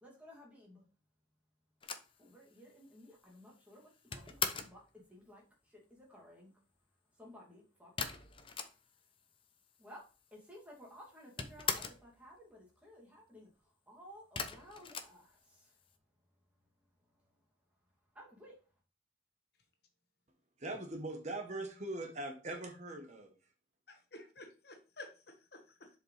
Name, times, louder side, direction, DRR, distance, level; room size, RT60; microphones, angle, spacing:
voice 1, 0.0-0.9 2.2-6.5 7.1-8.1 9.8-10.0 10.3-15.8 17.0-17.3 18.1-18.6, equal, 10° right, -3 dB, 2.3 m, -56 dB
sound 1, 1.8-4.8 8.0-9.1 9.4-9.5 9.7-10.5 10.8-12.1 14.3-15.8, left 6 dB, 30° left, 0.6 m, -40 dB
voice 2, 20.6-23.3, right 2 dB, 40° right, 4 dB, 1.0 m, -41 dB
voice 3, 23.9-25.9, left 2 dB, 55° left, 5 dB, 1.4 m, -52 dB
7.3 x 5.1 x 3.2 m, 0.35 s
head